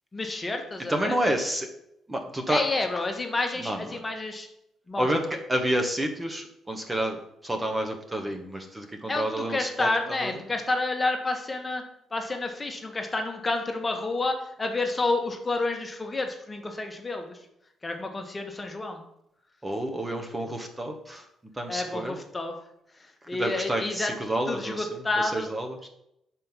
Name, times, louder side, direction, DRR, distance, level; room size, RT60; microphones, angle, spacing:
voice 1, 0.1-1.2 2.5-4.5 4.9-5.1 9.1-11.8 12.1-17.4 17.8-19.0 21.7-22.5 23.0-24.1 24.5-25.5, left 2 dB, 25° left, 4 dB, 1.1 m, -29 dB
voice 2, 0.9-1.7 2.1-2.6 3.6-4.0 5.0-5.2 5.5-10.4 19.6-21.2 21.5-22.2 23.3-24.9 25.2-25.9, right 1 dB, 15° right, 3 dB, 0.9 m, -29 dB
5.4 x 4.6 x 5.5 m, 0.79 s
cardioid pair, 90°, 0 cm